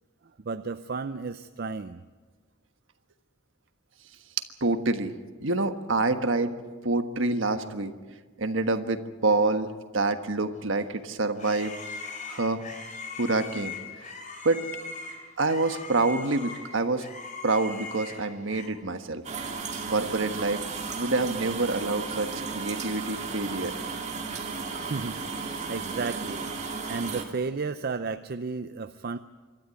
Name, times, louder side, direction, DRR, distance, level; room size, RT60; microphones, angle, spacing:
voice 1, 0.4-2.0 24.8-26.5 26.9-29.2, right 4 dB, 50° right, 10 dB, 0.5 m, -33 dB
voice 2, 4.6-5.1 5.4-6.5 6.8-7.9 8.4-11.7 12.3-12.6 13.2-13.7 14.4-14.6 15.4-17.1 17.4-19.2 19.9-20.6 20.9-23.7, right 3 dB, 65° right, 8 dB, 1.4 m, -27 dB
sound 1, 10.8-18.7, left 4 dB, 40° left, 3.1 m, -40 dB
sound 2, 19.2-27.2, right 4 dB, 35° right, 2.5 m, -34 dB
26.0 x 13.0 x 9.3 m, 1.4 s
head